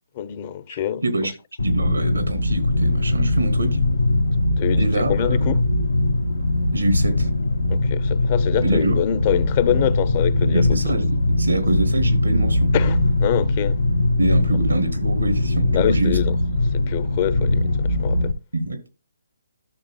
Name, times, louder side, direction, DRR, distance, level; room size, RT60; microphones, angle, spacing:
voice 1, 0.2-1.0 4.6-5.6 7.7-10.6 12.7-13.8 15.7-16.4 16.7-18.3, left 11 dB, 35° left, 0.7 m, -25 dB
sound 1, 1.6-18.3, left 2 dB, 90° left, 1.3 m, -21 dB
voice 2, 1.6-3.8 4.8-5.4 6.7-7.3 8.6-9.0 10.4-12.7 14.2-16.2 18.5-18.9, right 2 dB, 90° right, 2.6 m, -24 dB
13.5 x 6.6 x 2.2 m
figure-of-eight pair, 145°, 0 cm